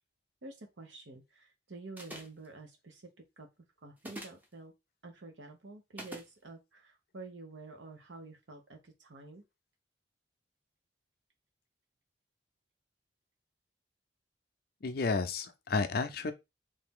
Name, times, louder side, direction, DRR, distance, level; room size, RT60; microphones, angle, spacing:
voice 1, 0.4-3.0 3.4-3.5 3.8-4.7 5.0-9.4, right 3 dB, 85° right, 1.0 m, -49 dB
sound 1, 2.0-2.5 4.0-4.5 6.0-6.3, equal, 10° right, 0.7 m, -44 dB
voice 2, 14.8-16.3, left 4 dB, 55° left, 0.5 m, -31 dB
3.3 x 2.7 x 3.6 m
head